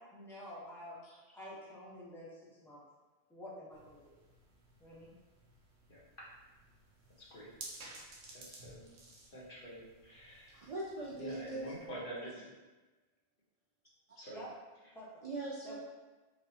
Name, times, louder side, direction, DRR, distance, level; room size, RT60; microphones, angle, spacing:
voice 1, 0.0-1.0 1.3-2.8 3.3-4.1 4.8-5.1 14.3-14.5 14.9-15.2 15.7-15.8, left 1 dB, ahead, -7 dB, 0.8 m, -49 dB
sound 1, 3.7-11.9, right 2 dB, 85° right, 1.0 m, -55 dB
voice 2, 5.9-6.3 7.2-7.5 8.3-8.9 9.3-10.7 11.2-12.5 14.2-14.4, right 1 dB, 55° left, -6 dB, 1.2 m, -47 dB
voice 3, 10.5-11.7 14.1-14.2 15.2-15.8, right 2 dB, 60° right, -2 dB, 0.4 m, -41 dB
4.7 x 2.7 x 2.7 m, 1.2 s
omnidirectional pair, 1.1 m